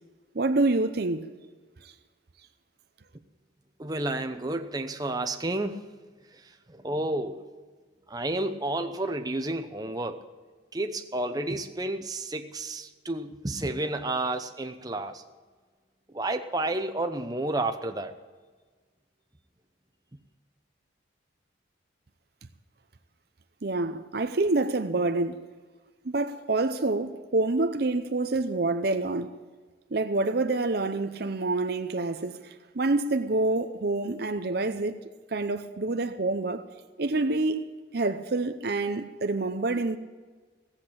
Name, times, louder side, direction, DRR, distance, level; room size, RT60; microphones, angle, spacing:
voice 1, 0.3-1.3 23.6-25.4 26.0-29.4 29.9-35.0 35.3-36.7 37.0-40.0, right 2 dB, 55° right, 0.7 m, -27 dB
voice 2, 3.8-5.8 6.3-7.5 8.1-10.2 10.7-15.2 16.1-18.1, right 2 dB, 20° right, 0.8 m, -31 dB
16.5 x 8.2 x 8.7 m
head